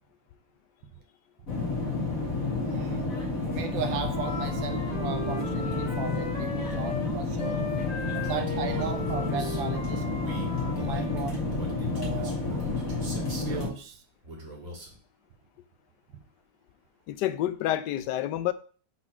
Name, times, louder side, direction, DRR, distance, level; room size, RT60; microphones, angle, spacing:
sound 1, 1.5-13.7, left 3 dB, 45° left, 2.3 m, -30 dB
voice 1, 2.7-3.1 3.5-7.6 8.1-10.0 10.6-11.5 12.0-12.4 13.4-14.0, right 6 dB, 80° right, 1.7 m, -36 dB
Wind instrument woodwind instrument, 3.4-7.1 7.4-11.2, left 2 dB, 20° left, 1.9 m, -38 dB
Male speech man speaking, 8.2-9.6 10.2-13.7 14.2-15.0, equal, 45° right, 2.1 m, -40 dB
voice 2, 17.1-18.5, left 13 dB, 70° left, 1.2 m, -28 dB
6.1 x 4.0 x 5.9 m
omnidirectional pair, 2.1 m